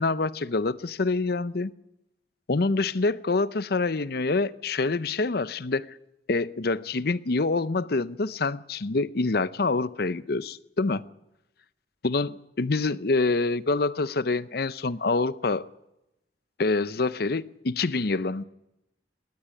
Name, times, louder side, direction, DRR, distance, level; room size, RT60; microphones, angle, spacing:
voice 1, 0.0-1.7 2.5-5.9 6.3-11.0 12.0-15.7 16.6-18.4, left 3 dB, 60° left, 16 dB, 0.7 m, -26 dB
20.0 x 17.5 x 9.9 m, 0.91 s
head